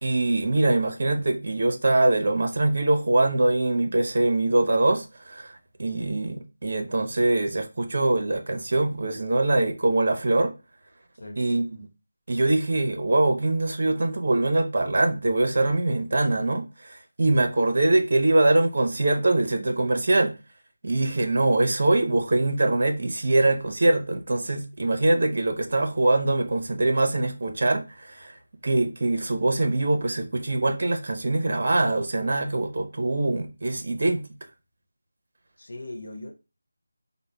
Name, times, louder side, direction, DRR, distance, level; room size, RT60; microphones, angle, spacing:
voice 1, 0.0-10.5 11.4-11.9 12.3-20.3 20.8-28.3 28.6-34.3, right 2 dB, 50° right, 0.9 m, -23 dB
voice 2, 35.6-36.3, left 1 dB, 70° left, 1.1 m, -39 dB
5.1 x 2.2 x 3.4 m
figure-of-eight pair, 165°, 0 cm